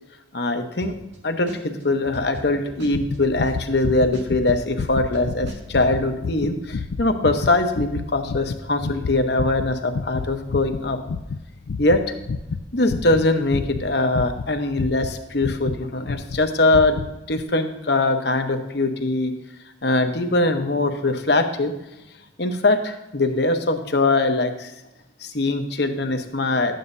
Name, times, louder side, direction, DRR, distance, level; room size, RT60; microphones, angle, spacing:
voice 1, 0.3-0.9 1.2-11.0 11.8-12.1 12.7-17.0 17.3-19.3 19.8-21.7 22.4-24.7 25.2-26.7, left 2 dB, 60° left, 5 dB, 1.0 m, -22 dB
sound 1, 0.8-1.2 1.5-3.8 4.1-5.9, equal, 75° right, 2.1 m, -38 dB
sound 2, 2.9-15.8 16.1-16.4 16.7-17.1 17.4-17.5, left 4 dB, 85° left, 0.4 m, -30 dB
13.0 x 9.2 x 2.7 m, 0.96 s
head